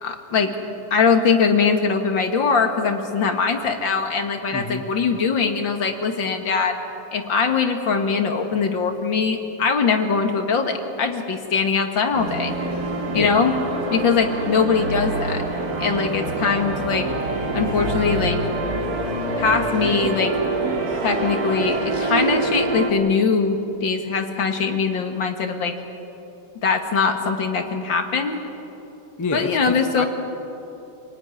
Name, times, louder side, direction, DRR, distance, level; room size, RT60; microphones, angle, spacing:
voice 1, 0.0-0.5 0.9-6.8 7.1-12.5 13.1-13.5 13.9-15.4 15.8-17.1 17.5-18.4 19.0-19.1 19.4-20.4 21.0-25.7 26.6-28.4 29.3-30.1, left 5 dB, 65° left, 5 dB, 2.5 m, -21 dB
voice 2, 4.5-4.9 13.1-13.4 29.2-30.1, left 3 dB, 15° left, 6 dB, 0.8 m, -27 dB
sound 1, 12.1-22.9, right 2 dB, 45° right, 2.7 m, -25 dB
27.5 x 18.5 x 9.8 m, 3.0 s
omnidirectional pair, 2.3 m